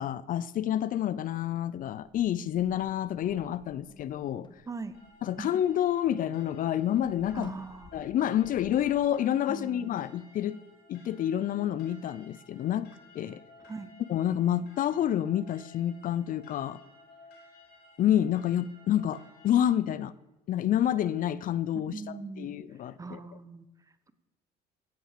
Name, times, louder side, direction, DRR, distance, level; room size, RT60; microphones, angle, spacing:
voice 1, 0.0-4.5 5.2-7.5 7.9-10.6 10.9-12.9 13.1-13.4 14.1-16.8 18.0-20.1 20.5-23.2, left 11 dB, 55° left, 18 dB, 0.5 m, -28 dB
sound 1, 2.0-6.2 6.5-9.0, left 3 dB, 30° left, 1.6 m, -56 dB
sound 2, 4.9-19.8, left 2 dB, 80° left, 5.0 m, -57 dB
voice 2, 7.3-8.1 9.5-9.9 13.6-13.9 21.9-22.6 23.0-23.7, right 4 dB, 20° right, 13 dB, 0.9 m, -40 dB
16.0 x 6.1 x 6.6 m, 1.0 s
cardioid pair, 110°, 17 cm